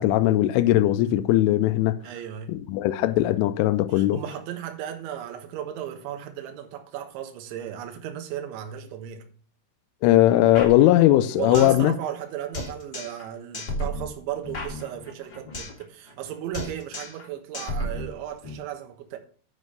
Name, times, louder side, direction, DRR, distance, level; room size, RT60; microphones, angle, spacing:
voice 1, 0.0-2.0 2.5-4.2 10.0-11.9, left 14 dB, 90° left, 3.2 m, -19 dB
voice 2, 2.0-2.6 3.9-9.3 11.4-19.2, right 10 dB, 75° right, 3.6 m, -35 dB
sound 1, 10.5-11.8 12.1-12.2 12.5-13.3 13.5-16.3 16.5-17.3 17.5-18.5, equal, 45° left, 1.3 m, -34 dB
9.7 x 5.3 x 6.6 m
omnidirectional pair, 5.6 m